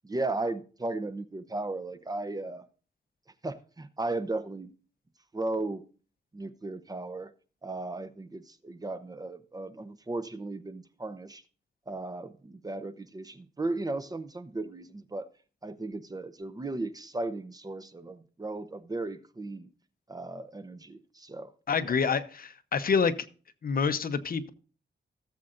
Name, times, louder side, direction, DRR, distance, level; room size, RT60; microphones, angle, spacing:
voice 1, 0.0-2.6 3.4-4.7 5.3-5.8 6.3-7.3 7.6-11.4 11.9-15.3 15.6-19.7 20.1-21.5, right 2 dB, 20° right, 0.7 m, -36 dB
voice 2, 21.7-23.1 23.6-24.5, left 5 dB, 55° left, 0.8 m, -27 dB
17.0 x 7.5 x 2.5 m
wide cardioid pair, 130°, 18 cm